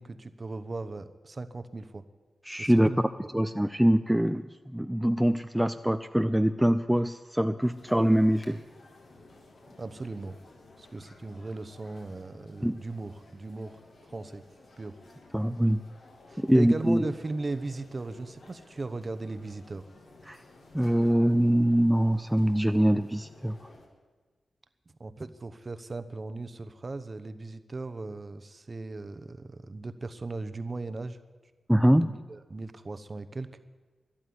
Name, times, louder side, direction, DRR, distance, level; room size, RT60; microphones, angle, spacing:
voice 1, 0.0-2.0 2.6-3.1 9.8-10.4 10.8-13.8 14.0-14.4 14.8-15.0 16.3-19.8 25.0-31.2 31.9-33.5, right 3 dB, 35° right, 12 dB, 0.9 m, -38 dB
voice 2, 2.5-2.9 3.3-4.5 4.7-8.6 12.6-12.7 15.3-15.8 16.4-17.1 20.3-20.4 20.7-23.5 31.7-32.0, equal, 5° right, 9 dB, 0.4 m, -23 dB
sound 1, 7.6-23.9, left 2 dB, 70° left, 2.8 m, -54 dB
12.5 x 11.5 x 9.5 m, 1.3 s
wide cardioid pair, 95°, 0 cm